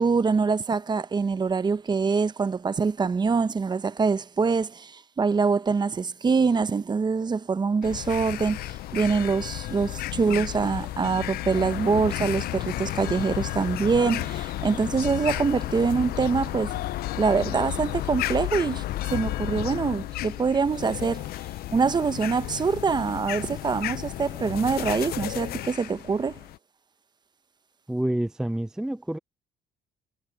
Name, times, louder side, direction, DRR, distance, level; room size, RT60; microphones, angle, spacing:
voice 1, 0.0-16.7 17.2-18.8 19.1-21.3 21.7-26.4, right 5 dB, 25° right, 0.8 m, -24 dB
sound 1, 7.8-26.6, left 15 dB, 65° left, 0.5 m, -32 dB
sound 2, 8.8-19.4, left 17 dB, 90° left, 4.1 m, -47 dB
voice 2, 27.9-29.2, right 1 dB, 5° right, 0.4 m, -28 dB
cardioid pair, 110°, 17 cm